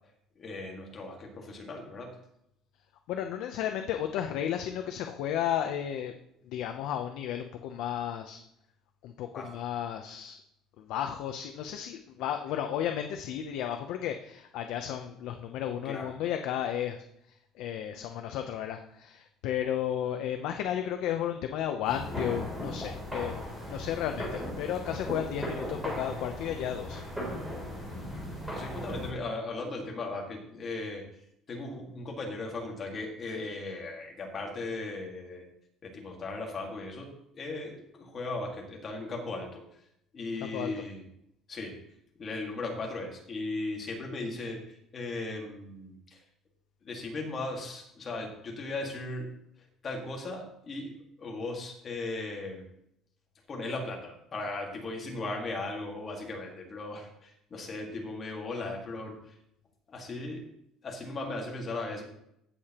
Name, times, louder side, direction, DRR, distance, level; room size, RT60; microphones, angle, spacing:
voice 1, 0.4-2.2 9.3-9.5 15.8-16.1 28.5-31.0 31.5-35.5 35.8-39.6 40.1-41.0 41.5-41.8 42.2-46.2 46.8-49.3 49.8-50.9 51.2-52.6 53.5-59.4 59.9-60.5 60.8-62.0, left 2 dB, 25° left, 0 dB, 1.8 m, -37 dB
voice 2, 3.1-6.1 6.5-8.4 9.0-10.4 10.8-17.0 17.6-27.0 40.5-40.7, left 10 dB, 60° left, 6 dB, 0.6 m, -33 dB
sound 1, 21.8-29.1, equal, 5° right, 3.2 m, -37 dB
16.0 x 6.7 x 3.0 m, 0.77 s
cardioid pair, 175°, 0 cm